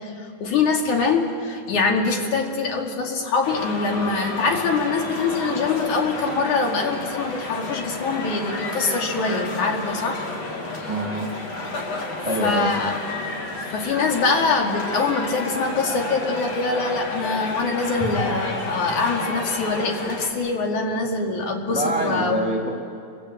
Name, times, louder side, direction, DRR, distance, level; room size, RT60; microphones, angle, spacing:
voice 1, 0.0-10.2 12.0-12.1 12.4-12.9 13.7-22.4, left 4 dB, 80° left, 1 dB, 3.8 m, -24 dB
sound 1, 3.4-20.3, left 2 dB, 60° left, 4.0 m, -31 dB
voice 2, 10.9-11.3 12.2-12.7 21.7-22.7, right 1 dB, 15° right, 0 dB, 1.8 m, -25 dB
29.0 x 24.5 x 8.0 m, 2.4 s
omnidirectional pair, 3.4 m